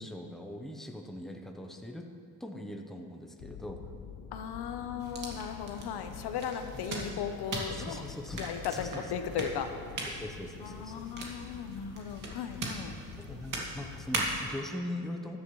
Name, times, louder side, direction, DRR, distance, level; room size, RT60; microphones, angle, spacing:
voice 1, 0.0-2.1 2.4-3.8 6.7-6.8 7.8-9.0 10.0-11.1 12.9-15.4, left 1 dB, ahead, 3 dB, 0.8 m, -41 dB
sound 1, 3.4-14.5, left 7 dB, 60° left, 0.7 m, -47 dB
voice 2, 4.3-8.0 8.4-9.7 10.6-12.9 13.4-13.5 13.8-13.9, left 7 dB, 85° left, 7 dB, 1.0 m, -37 dB
sound 2, 5.0-14.6, right 2 dB, 55° right, 2.2 m, -40 dB
14.5 x 11.5 x 3.2 m, 2.4 s
cardioid pair, 135°, 38 cm